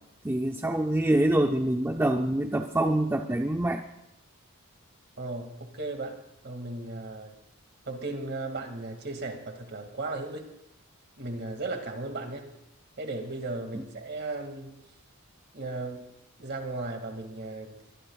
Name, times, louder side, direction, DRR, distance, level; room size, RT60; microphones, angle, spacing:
voice 1, 0.2-3.8, right 1 dB, 10° right, 4 dB, 0.5 m, -25 dB
voice 2, 5.2-6.2 6.4-7.3 7.9-10.5 11.2-12.5 13.0-14.8 15.5-16.1 16.4-17.8, right 2 dB, 50° right, 4 dB, 2.2 m, -36 dB
23.0 x 19.0 x 2.4 m, 0.81 s
head